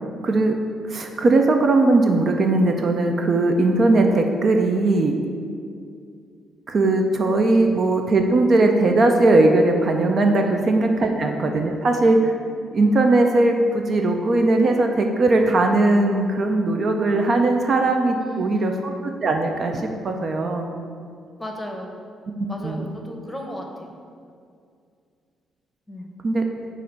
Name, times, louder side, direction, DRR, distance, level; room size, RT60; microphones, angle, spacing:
voice 1, 0.2-0.6 0.9-5.2 6.7-12.3 12.7-18.9 19.2-20.7 22.6-22.9 26.2-26.4, right 2 dB, 50° right, 4 dB, 0.5 m, -19 dB
voice 2, 10.4-10.7 11.0-11.2 18.2-18.8 21.4-21.9 22.5-24.0 25.9-26.1, left 1 dB, 10° left, 1 dB, 0.8 m, -35 dB
7.4 x 2.5 x 5.3 m, 2.3 s
cardioid pair, 90°, 0 cm